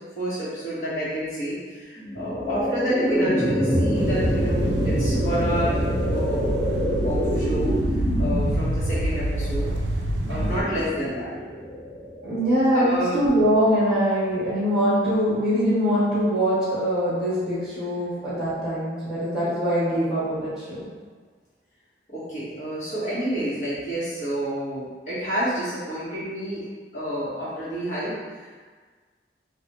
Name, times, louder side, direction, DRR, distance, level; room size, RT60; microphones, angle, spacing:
voice 1, 0.1-5.8 6.1-6.7 7.0-7.7 8.2-9.7 10.3-11.3 12.7-13.3 22.1-26.6 26.9-28.4, equal, 40° left, -11 dB, 1.3 m, -29 dB
sound 1, 2.0-13.1, equal, 90° left, 1.3 m, -26 dB
sound 2, 3.9-10.6, right 1 dB, 75° right, 0.3 m, -27 dB
voice 2, 12.2-20.9, equal, 5° right, -12 dB, 1.4 m, -23 dB
3.3 x 2.4 x 3.0 m, 1.5 s
head